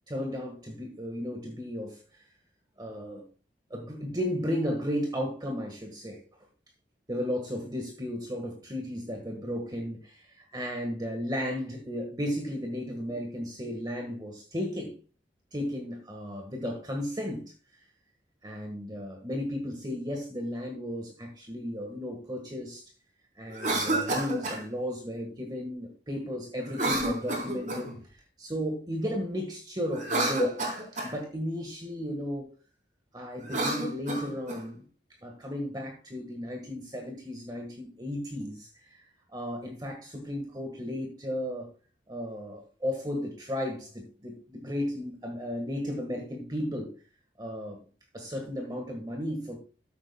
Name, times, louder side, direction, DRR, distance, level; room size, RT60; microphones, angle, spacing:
voice 1, 0.1-2.3 2.8-3.3 3.7-6.2 7.1-15.0 15.5-17.5 18.4-22.9 23.4-32.5 33.1-34.8 35.1-41.7 42.1-46.9 47.4-47.8 48.1-49.6, equal, 20° right, 1.5 m, -34 dB
Cough, 23.5-24.6 26.7-28.0 29.9-31.1 33.4-34.6, right 1 dB, 45° right, 3.8 m, -29 dB
14.0 x 8.5 x 2.2 m
head